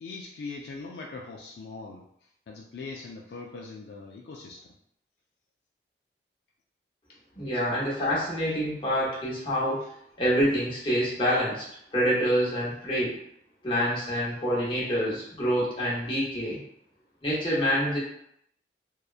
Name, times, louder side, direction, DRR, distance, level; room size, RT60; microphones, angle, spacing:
voice 1, 0.0-2.1 2.5-4.7 9.8-9.9, left 3 dB, 70° left, -1 dB, 0.3 m, -41 dB
voice 2, 7.4-9.8 10.2-11.6 11.9-13.2 13.6-16.6 17.2-18.0, equal, 30° left, -7 dB, 0.8 m, -26 dB
2.7 x 2.2 x 2.4 m, 0.72 s
head